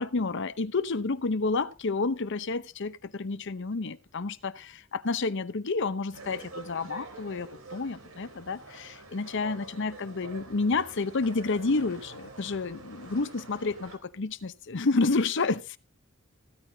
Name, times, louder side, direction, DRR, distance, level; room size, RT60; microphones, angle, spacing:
voice 1, 0.0-15.8, left 3 dB, 60° left, 0.8 m, -30 dB
sound 1, 6.1-14.0, right 3 dB, 90° right, 3.7 m, -46 dB
15.5 x 13.0 x 2.7 m
head